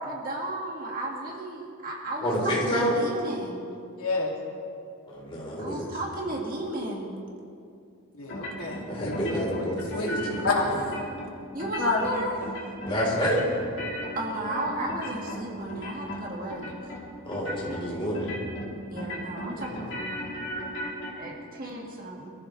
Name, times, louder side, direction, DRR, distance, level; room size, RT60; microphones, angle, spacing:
voice 1, 0.0-3.6 5.6-7.1 11.5-12.5 14.1-17.0 18.9-20.1 21.2-22.3, right 1 dB, 40° right, -1 dB, 2.0 m, -34 dB
voice 2, 2.2-3.0 5.1-5.9 8.9-10.8 12.8-13.4 17.2-18.4, equal, 25° left, -4 dB, 4.0 m, -28 dB
voice 3, 3.9-4.3 8.2-9.7 9.9-10.2 10.4-10.6 11.8-12.0, left 3 dB, 75° left, -2 dB, 2.6 m, -28 dB
sound 1, 8.3-8.8 9.1-10.5 10.8-11.3 11.6-12.1 12.4-13.0 13.2-15.4 15.7-16.2 16.5-17.0 17.3-17.8 18.1-18.7 19.0-21.1, left 1 dB, 55° left, 3.3 m, -36 dB
23.0 x 14.5 x 3.3 m, 2.5 s
head